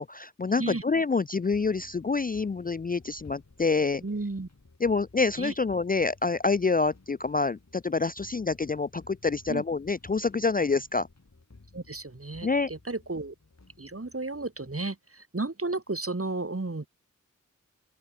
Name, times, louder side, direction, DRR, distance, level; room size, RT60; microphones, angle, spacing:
voice 1, 0.0-4.0 4.8-11.1 12.4-12.7, left 4 dB, 30° left, 0.4 m, -27 dB
sound 1, 1.5-14.8, left 3 dB, 55° left, 5.3 m, -56 dB
voice 2, 4.0-4.5 5.4-5.5 9.5-9.6 11.7-13.3 13.8-16.9, right 3 dB, 45° right, 3.7 m, -33 dB
open air
wide cardioid pair, 55°, 32 cm